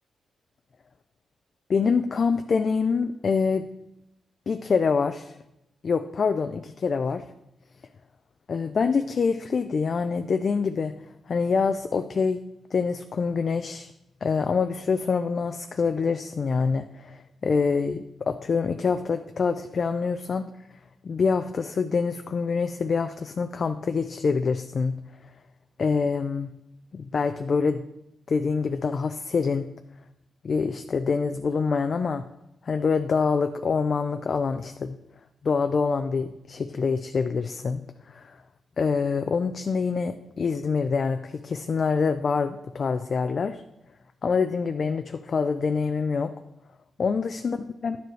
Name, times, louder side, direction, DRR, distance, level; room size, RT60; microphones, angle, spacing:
voice 1, 1.7-3.7 4.5-5.4 5.8-7.2 8.5-10.9 11.3-12.4 12.7-13.9 14.2-20.4 21.0-25.0 25.8-26.5 26.9-27.8 28.3-29.7 30.4-32.2 32.6-35.0 35.4-37.8 38.1-38.4 38.8-43.6 44.2-46.3 47.0-48.0, left 5 dB, 50° left, 8 dB, 0.4 m, -25 dB
10.5 x 6.7 x 3.2 m, 0.86 s
cardioid pair, 100°, 0 cm